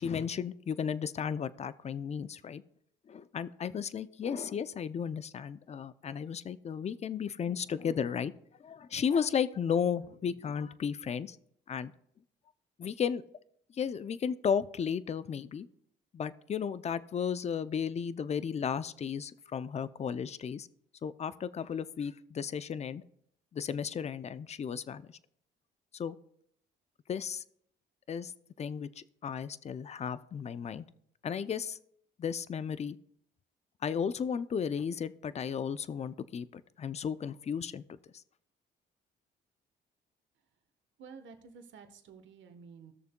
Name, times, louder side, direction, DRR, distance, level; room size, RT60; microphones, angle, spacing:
voice 1, 0.0-2.6 3.1-8.3 8.6-11.4 11.7-11.9 12.8-13.2 13.7-15.7 16.1-20.7 21.0-23.0 23.5-25.2 25.9-26.2 27.1-27.4 28.1-28.3 28.6-30.8 31.2-31.8 32.2-33.0 33.8-38.2, left 7 dB, 35° left, 16 dB, 0.4 m, -34 dB
voice 2, 41.0-42.9, right 5 dB, 70° right, 7 dB, 1.1 m, -51 dB
16.5 x 6.6 x 2.2 m, 0.69 s
cardioid pair, 90°, 20 cm